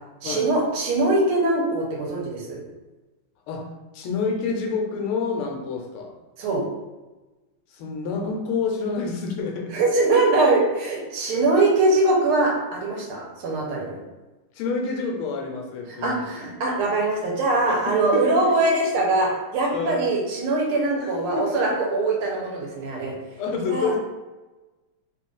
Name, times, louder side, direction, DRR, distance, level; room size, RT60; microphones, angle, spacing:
voice 1, 0.2-2.6 6.4-6.6 9.7-14.0 16.0-23.1 23.7-23.9, right 2 dB, 85° right, -1 dB, 1.7 m, -22 dB
voice 2, 3.9-6.1 7.7-9.8 11.3-11.4 14.5-16.3 17.7-18.4 19.7-20.1 21.0-21.5 22.9-23.0 23.4-24.0, left 4 dB, 85° left, 1 dB, 1.6 m, -28 dB
3.8 x 2.5 x 3.8 m, 1.1 s
omnidirectional pair, 2.3 m